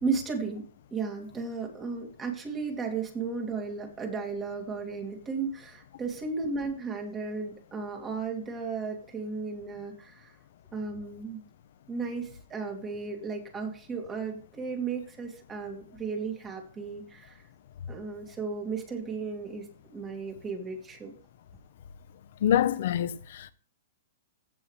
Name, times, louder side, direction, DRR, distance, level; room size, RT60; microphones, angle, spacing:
voice 1, 0.0-0.6 0.9-10.4 10.7-11.4 11.9-17.4 17.9-21.1, right 4 dB, 15° right, 2.4 m, -34 dB
voice 2, 22.4-23.5, left 10 dB, 65° left, 0.9 m, -26 dB
15.5 x 5.6 x 3.3 m
hypercardioid pair, 155°, 0 cm